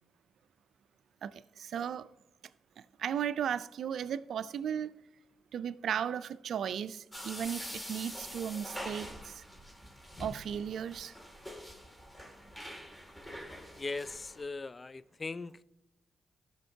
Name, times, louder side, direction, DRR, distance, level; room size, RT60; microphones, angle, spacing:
voice 1, 1.2-2.1 3.0-5.0 5.5-9.4 10.2-11.2, right 8 dB, 70° right, 0.3 m, -36 dB
sound 1, 7.1-14.4, equal, 15° left, 2.3 m, -45 dB
voice 2, 13.8-15.6, left 3 dB, 40° left, 0.4 m, -39 dB
15.5 x 6.5 x 2.7 m
hypercardioid pair, 40°, 0 cm